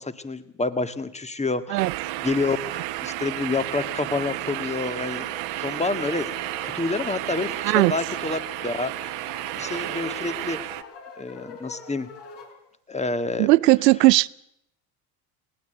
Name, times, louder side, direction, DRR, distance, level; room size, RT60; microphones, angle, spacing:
voice 1, 0.0-1.9 2.2-5.3 5.6-9.1 9.6-10.7 11.2-12.1 12.9-13.5, left 3 dB, 15° left, 1.8 m, -28 dB
sound 1, 1.8-10.8, right 16 dB, 65° right, 1.5 m, -32 dB
sound 2, 5.1-12.6, left 4 dB, 60° left, 5.4 m, -44 dB
voice 2, 13.4-14.3, right 20 dB, 85° right, 0.7 m, -17 dB
20.0 x 18.0 x 8.0 m
hypercardioid pair, 75°, 48 cm